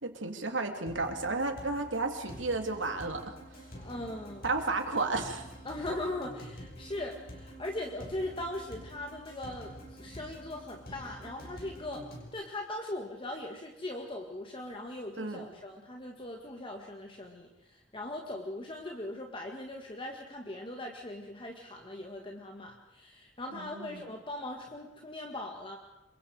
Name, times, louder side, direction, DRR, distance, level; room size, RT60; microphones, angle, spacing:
voice 1, 0.0-3.4 4.4-5.4 15.2-15.5 23.5-24.0, right 3 dB, 90° right, 5 dB, 2.9 m, -32 dB
sound 1, 0.9-12.3, equal, 55° left, 6.0 m, -47 dB
voice 2, 3.7-4.5 5.6-12.1 12.3-25.8, left 1 dB, 30° left, 2 dB, 1.9 m, -40 dB
27.0 x 24.0 x 5.0 m, 0.97 s
head